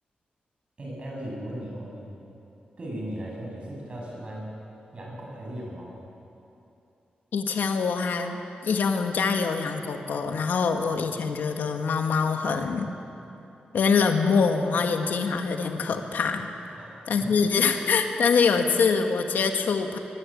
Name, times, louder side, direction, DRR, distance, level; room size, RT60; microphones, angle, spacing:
voice 1, 0.8-2.1 2.8-4.5 4.9-6.0 16.7-17.3, right 1 dB, 35° right, -3 dB, 7.4 m, -37 dB
voice 2, 7.3-12.9 13.7-16.5 17.1-20.0, left 5 dB, 90° left, 4 dB, 1.9 m, -24 dB
23.0 x 21.5 x 8.8 m, 2.9 s
wide cardioid pair, 170°, 3 cm